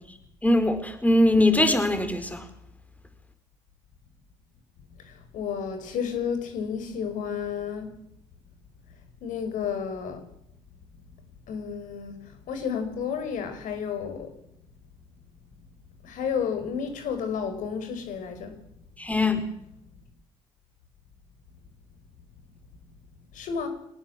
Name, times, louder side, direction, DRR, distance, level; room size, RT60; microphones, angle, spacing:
voice 1, 0.4-2.4 19.0-19.4, left 1 dB, 10° left, 8 dB, 4.7 m, -21 dB
voice 2, 5.0-7.9 9.2-10.2 11.5-12.2 12.5-14.3 16.0-18.5 23.3-23.7, left 7 dB, 75° left, 7 dB, 5.4 m, -31 dB
23.5 x 19.0 x 7.7 m, 0.77 s
supercardioid pair, 60°, 14 cm